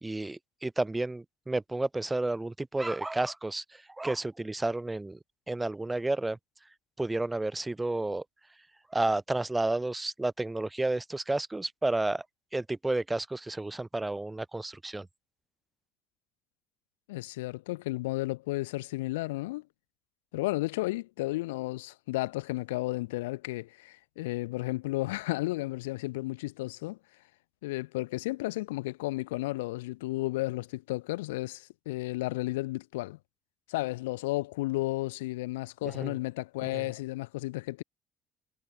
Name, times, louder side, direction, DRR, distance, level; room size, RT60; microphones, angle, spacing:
voice 1, 0.0-5.2 5.5-6.4 7.0-8.2 8.9-12.2 12.5-15.1 35.8-36.1 36.6-36.8, right 2 dB, 15° right, 3.2 m, -31 dB
voice 2, 17.1-19.6 20.3-27.0 27.6-33.2 33.7-37.8, left 20 dB, 75° left, 5.3 m, -33 dB
hypercardioid pair, 55°, 0 cm